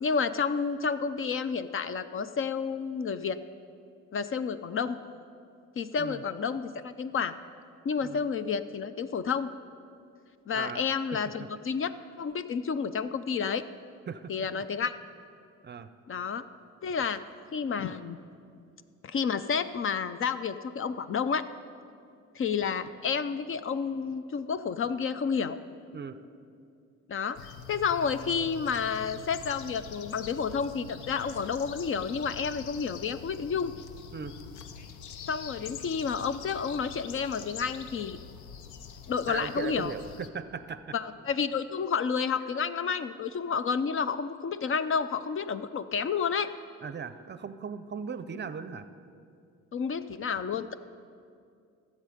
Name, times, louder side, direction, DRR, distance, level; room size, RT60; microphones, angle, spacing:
voice 1, 0.0-3.4 4.1-5.0 5.8-7.3 7.8-9.5 10.5-11.9 12.2-13.7 14.3-14.9 16.1-16.4 16.8-17.2 17.5-18.2 19.0-21.4 22.4-25.6 27.1-27.4 27.7-33.7 35.3-38.2 39.1-39.9 40.9-46.5 49.7-50.7, left 6 dB, 45° left, 13 dB, 0.5 m, -30 dB
voice 2, 10.5-10.8 11.1-11.5 14.1-14.6 15.6-15.9 25.9-26.2 34.1-34.3 39.3-40.9 46.8-48.9, right 6 dB, 35° right, 12 dB, 0.6 m, -38 dB
sound 1, 27.3-40.3, left 7 dB, 80° left, 0.7 m, -45 dB
16.5 x 7.5 x 5.1 m, 2.4 s
cardioid pair, 90°, 30 cm